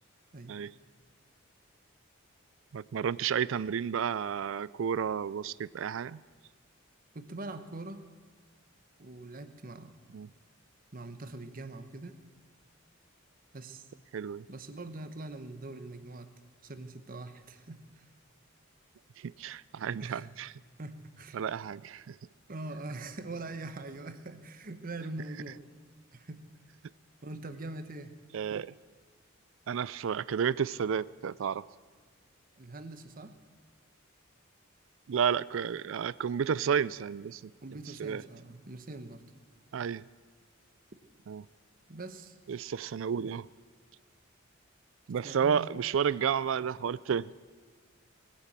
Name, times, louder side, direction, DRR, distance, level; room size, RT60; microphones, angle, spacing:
voice 1, 2.7-6.2 10.1-10.3 14.1-14.4 19.2-20.5 21.3-22.2 28.3-28.7 29.7-31.7 35.1-37.5 38.0-38.2 39.7-40.1 41.3-41.5 42.5-43.5 45.1-47.3, right 7 dB, 65° right, 20 dB, 0.4 m, -31 dB
voice 2, 7.1-8.0 9.0-9.9 10.9-12.1 13.5-13.9 14.5-16.3 16.6-18.0 20.0-20.2 20.8-21.4 22.5-25.6 26.1-26.4 27.2-28.2 32.6-33.4 37.6-39.2 41.9-42.4 45.2-45.7, right 2 dB, 45° right, 10 dB, 1.0 m, -43 dB
19.5 x 9.9 x 7.4 m, 1.5 s
head